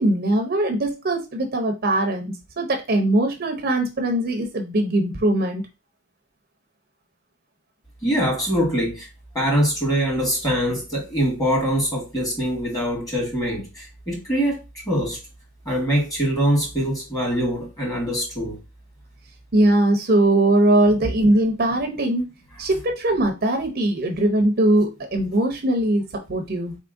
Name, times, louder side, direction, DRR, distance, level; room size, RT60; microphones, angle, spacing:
voice 1, 0.0-5.6 19.5-22.2 22.6-26.8, right 1 dB, 45° right, 0.7 m, -21 dB
voice 2, 8.0-9.1 9.3-15.2 15.7-18.6, equal, 20° left, 1.9 m, -23 dB
4.1 x 3.5 x 2.5 m
head